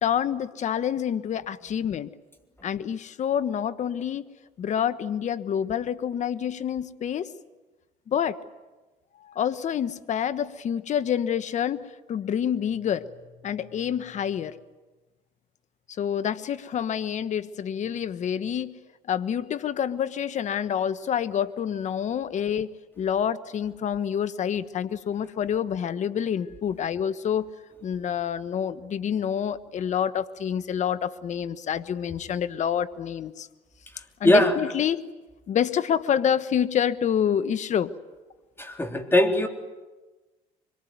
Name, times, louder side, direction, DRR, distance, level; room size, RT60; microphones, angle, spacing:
voice 1, 0.0-2.1 2.6-4.3 4.6-7.3 8.1-8.4 9.2-13.1 13.4-14.6 16.0-18.7 19.1-22.7 23.0-27.5 27.8-33.5 34.2-35.0 35.5-37.9, left 8 dB, 50° left, 13 dB, 1.3 m, -27 dB
voice 2, 34.2-34.6 38.6-39.5, left 1 dB, 15° left, 5 dB, 3.7 m, -20 dB
25.0 x 23.0 x 9.5 m, 1.2 s
supercardioid pair, 95°, 16 cm